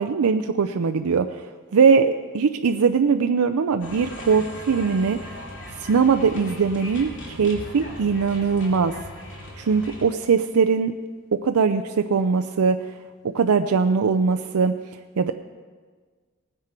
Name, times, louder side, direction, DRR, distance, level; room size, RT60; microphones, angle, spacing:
voice 1, 0.0-1.4 1.7-5.2 5.8-8.9 9.6-10.9 11.3-12.9 13.2-14.7 15.2-15.3, right 5 dB, 80° right, 7 dB, 0.5 m, -21 dB
sound 1, 3.8-10.0, left 1 dB, 55° left, 2.6 m, -39 dB
18.0 x 9.7 x 4.4 m, 1.5 s
head